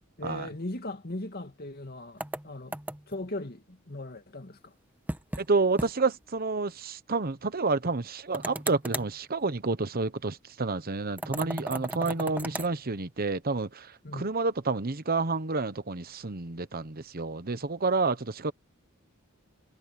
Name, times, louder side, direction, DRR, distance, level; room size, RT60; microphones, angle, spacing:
voice 1, 0.2-2.8 3.1-4.7 14.0-14.3, left 2 dB, 50° left, 2.6 m, -38 dB
sound 1, 2.2-3.2 5.1-5.5 5.8-5.9 6.2-6.3 8.3-9.1 11.2-12.7, right 1 dB, 10° right, 1.4 m, -35 dB
voice 2, 5.4-18.5, right 3 dB, 45° right, 1.1 m, -29 dB
head